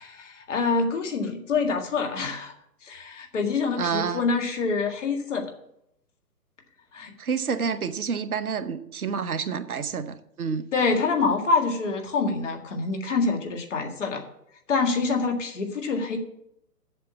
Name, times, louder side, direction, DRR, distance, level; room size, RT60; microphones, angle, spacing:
voice 1, 0.0-2.5 2.8-5.5 6.9-7.1 10.7-14.3 14.7-16.2, left 4 dB, 50° left, 5 dB, 1.9 m, -26 dB
voice 2, 3.8-4.2 7.2-10.7, right 6 dB, 65° right, 11 dB, 0.9 m, -29 dB
7.6 x 6.8 x 8.3 m, 0.77 s
figure-of-eight pair, 135°, 47 cm